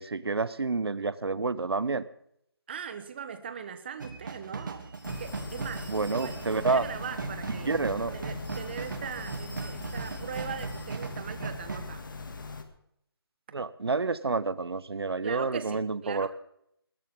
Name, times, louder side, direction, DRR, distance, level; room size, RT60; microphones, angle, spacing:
voice 1, 0.0-2.0 5.9-6.9 7.6-8.2 13.5-16.3, right 4 dB, 80° right, 16 dB, 0.9 m, -29 dB
voice 2, 2.7-4.9 5.2-7.7 8.1-12.0 15.2-16.3, right 7 dB, 25° right, 10 dB, 1.1 m, -40 dB
sound 1, 4.0-11.8, right 4 dB, 50° right, 2.5 m, -38 dB
sound 2, 4.9-6.9 8.4-11.3, left 1 dB, 80° left, 7.6 m, -52 dB
sound 3, 5.0-12.6, left 4 dB, 55° left, 2.3 m, -41 dB
20.5 x 16.0 x 3.8 m, 0.73 s
figure-of-eight pair, 170°, 13 cm